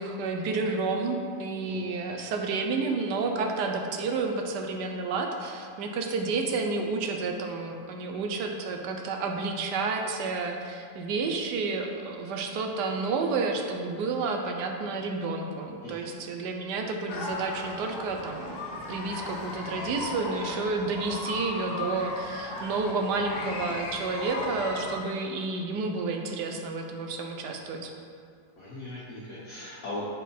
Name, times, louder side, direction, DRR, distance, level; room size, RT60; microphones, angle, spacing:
voice 1, 0.0-27.9, right 3 dB, 75° right, 3 dB, 1.2 m, -30 dB
voice 2, 1.6-2.1 15.8-16.1 28.6-30.0, left 2 dB, 50° left, -12 dB, 1.7 m, -39 dB
sound 1, 17.1-25.0, left 2 dB, 65° left, 1.2 m, -36 dB
7.1 x 3.8 x 4.3 m, 2.3 s
omnidirectional pair, 1.9 m